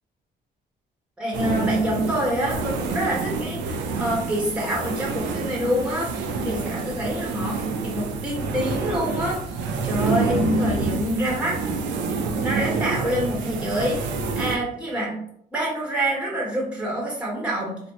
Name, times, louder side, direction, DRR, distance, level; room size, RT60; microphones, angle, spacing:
voice 1, 1.2-11.6 12.1-14.1 14.4-15.2 15.5-17.8, equal, 5° right, -4 dB, 1.2 m, -27 dB
sound 1, 1.3-14.6, right 4 dB, 90° right, 0.4 m, -27 dB
3.4 x 2.1 x 2.7 m, 0.69 s
cardioid pair, 85°, 18 cm